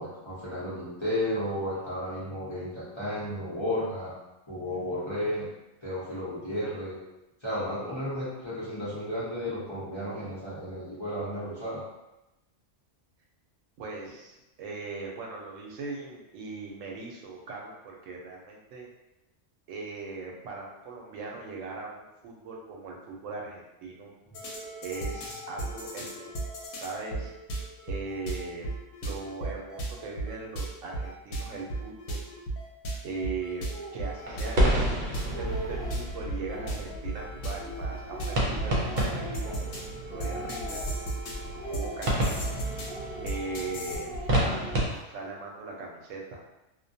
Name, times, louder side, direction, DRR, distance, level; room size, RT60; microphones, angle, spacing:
voice 1, 0.0-4.2 4.5-5.5 5.8-7.0 7.4-11.8 24.3-24.4, left 1 dB, 25° left, -11 dB, 0.8 m, -33 dB
voice 2, 13.8-18.9 19.7-24.1 24.8-26.3 26.7-27.3 27.9-28.7 29.0-32.3 33.0-40.8 41.7-42.6 43.2-46.4, right 3 dB, 90° right, 0 dB, 0.9 m, -39 dB
sound 1, 24.3-44.0, right 2 dB, 90° left, 1.0 m, -36 dB
Speech, 33.7-34.0 34.7-34.8 35.2-36.1 36.4-37.1 37.6-39.9 40.1-41.1 41.6-42.5 42.9-43.5 43.9-45.0, right 1 dB, 60° left, 0.9 m, -42 dB
sound 2, 34.3-44.9, right 1 dB, 55° right, 0.5 m, -31 dB
2.4 x 2.1 x 2.6 m, 0.96 s
omnidirectional pair, 1.3 m